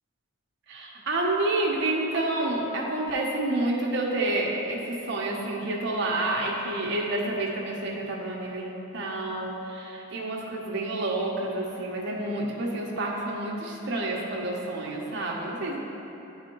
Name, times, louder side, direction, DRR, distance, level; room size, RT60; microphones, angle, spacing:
voice 1, 0.7-15.8, right 2 dB, 55° right, -2 dB, 1.0 m, -29 dB
11.0 x 4.1 x 3.0 m, 3.0 s
head